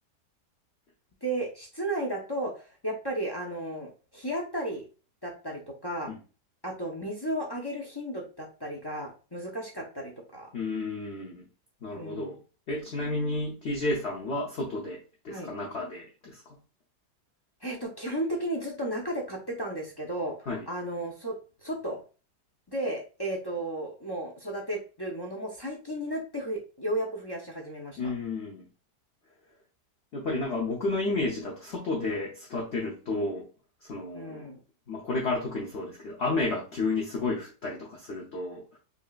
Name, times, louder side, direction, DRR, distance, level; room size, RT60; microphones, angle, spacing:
voice 1, 1.2-4.8 5.2-6.1 6.6-10.5 12.0-12.3 15.3-15.5 17.6-20.3 20.7-21.3 21.6-22.0 22.7-28.1 34.1-34.6, right 1 dB, 25° left, -2 dB, 0.5 m, -34 dB
voice 2, 10.5-11.5 11.8-12.4 12.7-16.6 20.5-20.6 28.0-28.6 30.1-33.4 33.9-34.5 34.9-38.8, left 2 dB, 50° left, -3 dB, 0.9 m, -32 dB
5.2 x 2.8 x 2.4 m, 0.34 s
omnidirectional pair, 1.8 m